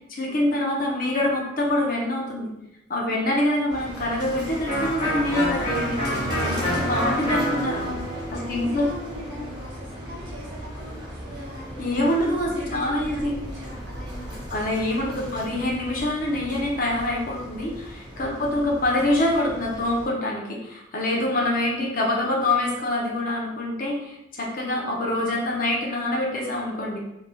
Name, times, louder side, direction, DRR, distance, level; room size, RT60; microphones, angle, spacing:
voice 1, 0.1-2.5 2.9-6.0 6.4-8.0 8.3-8.9 11.8-13.3 14.5-27.0, left 1 dB, 45° left, -3 dB, 0.6 m, -25 dB
voice 2, 3.1-3.4 8.3-15.7, equal, 60° right, -5 dB, 1.0 m, -41 dB
sound 1, 3.7-20.1, equal, 20° right, 0.6 m, -36 dB
Electric guitar, 4.7-10.3, equal, 30° left, 0.9 m, -29 dB
3.3 x 2.6 x 2.2 m, 0.89 s
head